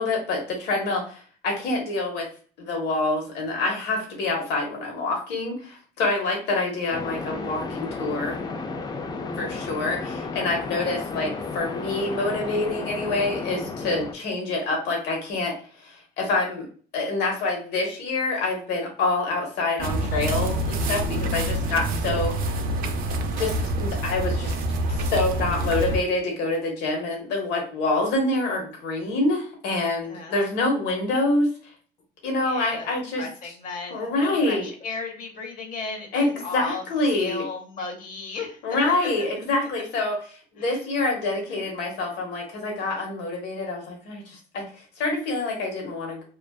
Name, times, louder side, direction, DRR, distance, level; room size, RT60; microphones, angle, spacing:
voice 1, 0.0-2.2 2.6-8.3 9.4-15.5 15.8-16.7 16.9-22.3 23.4-24.5 24.9-31.5 32.2-33.2 33.9-34.7 36.1-37.5 38.6-40.2 40.6-46.2, left 2 dB, 80° left, 0 dB, 0.9 m, -26 dB
sound 1, 6.9-14.1, left 4 dB, 25° left, 0.3 m, -33 dB
sound 2, 19.8-26.0, right 1 dB, 55° right, 0.4 m, -26 dB
voice 2, 30.0-30.5 32.4-32.9 33.2-36.8 37.2-39.1 40.6-40.8 41.2-41.3, left 4 dB, 55° left, 3 dB, 0.8 m, -35 dB
2.4 x 2.4 x 2.2 m, 0.41 s
cardioid pair, 110°, 17 cm